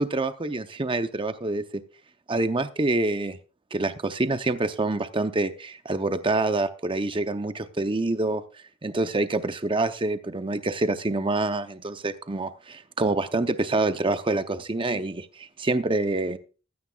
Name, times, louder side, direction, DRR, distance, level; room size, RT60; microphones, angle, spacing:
voice 1, 0.0-1.8 2.3-3.4 3.7-8.4 8.8-16.4, right 2 dB, 25° right, 10 dB, 0.7 m, -26 dB
15.5 x 13.5 x 2.3 m, 0.34 s
head